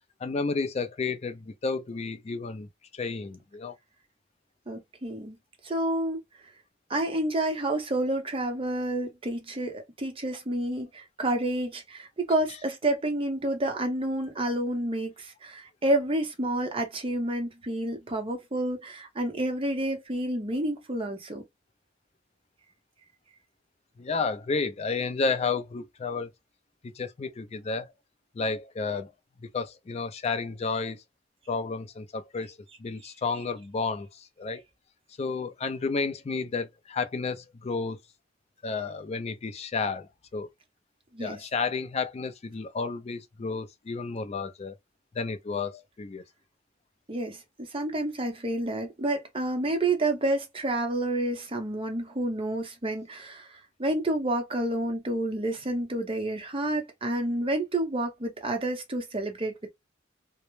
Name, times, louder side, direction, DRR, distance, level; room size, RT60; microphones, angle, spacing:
voice 1, 0.2-2.7 2.9-3.7 24.0-26.3 26.8-27.9 28.3-29.1 29.5-31.0 31.5-34.6 35.2-38.0 38.6-40.5 41.2-44.7 45.2-46.2, left 4 dB, 35° left, 0.4 m, -31 dB
voice 2, 4.7-5.4 5.6-6.2 6.9-21.4 33.0-33.1 41.1-41.4 47.1-59.7, right 1 dB, 30° right, 0.6 m, -29 dB
2.0 x 2.0 x 3.0 m
head